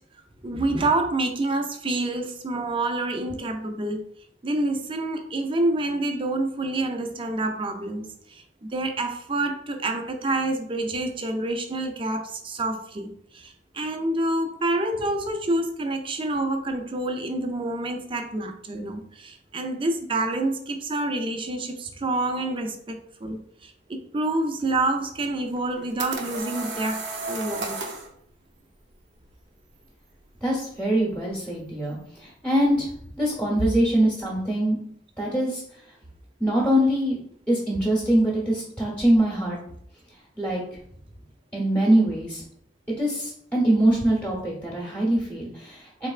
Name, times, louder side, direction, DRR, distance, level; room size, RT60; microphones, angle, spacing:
voice 1, 0.4-4.0 4.4-27.8, right 2 dB, 30° right, 5 dB, 0.5 m, -28 dB
sound 1, 25.6-28.1, right 3 dB, 75° right, 0.7 m, -33 dB
voice 2, 30.4-32.9 33.2-34.8 35.2-35.6 36.4-37.2 37.5-39.6 40.4-40.6 41.5-42.4 43.0-46.1, right 1 dB, 10° left, -5 dB, 0.9 m, -23 dB
4.0 x 3.2 x 2.4 m, 0.66 s
head